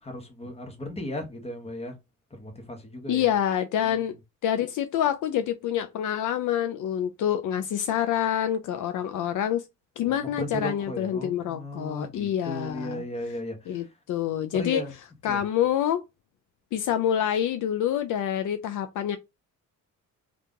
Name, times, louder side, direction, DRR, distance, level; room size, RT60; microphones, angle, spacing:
voice 1, 0.0-2.0 2.4-3.3 3.8-4.1 10.1-13.9 14.6-14.9 15.3-15.4, left 1 dB, 20° left, 1.0 m, -36 dB
voice 2, 3.1-4.1 4.4-9.6 10.0-13.0 13.7-14.8 15.2-16.0 16.7-19.2, left 10 dB, 65° left, 0.4 m, -27 dB
2.8 x 2.5 x 3.5 m
cardioid pair, 150°, 33 cm